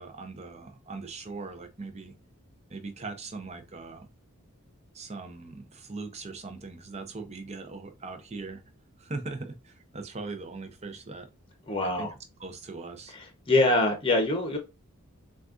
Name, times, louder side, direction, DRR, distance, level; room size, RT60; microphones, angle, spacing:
voice 1, 0.0-2.1 2.7-4.1 4.9-8.6 9.0-11.3 11.8-12.1 12.4-13.1, right 3 dB, 30° right, 0.6 m, -40 dB
voice 2, 11.7-12.1 13.1-14.6, left 2 dB, 25° left, 0.9 m, -24 dB
6.3 x 2.4 x 2.5 m
head